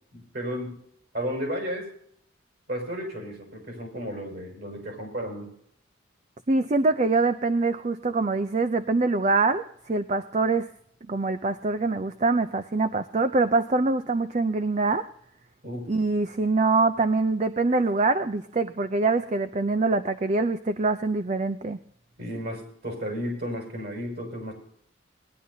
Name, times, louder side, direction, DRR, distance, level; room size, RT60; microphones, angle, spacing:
voice 1, 0.1-0.8 1.1-1.9 2.7-5.5 15.6-15.9 22.2-24.5, equal, 50° right, 1 dB, 5.7 m, -33 dB
voice 2, 6.5-10.7 11.1-15.1 15.9-21.8, right 3 dB, 35° right, 10 dB, 0.5 m, -24 dB
20.0 x 11.0 x 2.7 m, 0.67 s
head